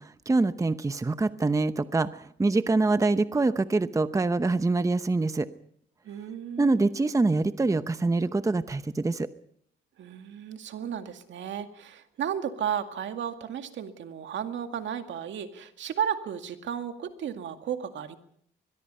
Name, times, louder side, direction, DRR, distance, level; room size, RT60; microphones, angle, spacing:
voice 1, 0.0-5.5 6.6-9.3, right 3 dB, 15° right, 12 dB, 0.8 m, -25 dB
voice 2, 6.0-6.8 10.0-18.2, right 9 dB, 70° right, 7 dB, 2.1 m, -34 dB
23.0 x 21.5 x 5.5 m, 0.66 s
cardioid pair, 90°, 20 cm